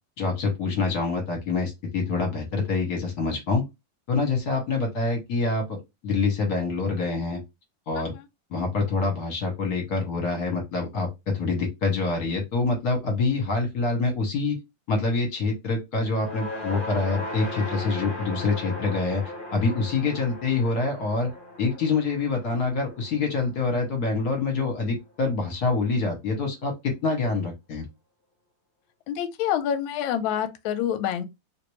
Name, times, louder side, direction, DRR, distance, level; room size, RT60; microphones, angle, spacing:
voice 1, 0.2-3.6 4.1-5.8 6.0-7.4 7.9-8.1 8.5-14.6 14.9-19.2 19.5-21.3 21.6-27.8, left 3 dB, 55° left, 1.3 m, -26 dB
sound 1, 16.0-24.4, left 1 dB, 35° left, 0.8 m, -37 dB
voice 2, 29.1-31.2, left 9 dB, 75° left, 1.3 m, -27 dB
3.2 x 2.5 x 3.0 m
omnidirectional pair, 2.4 m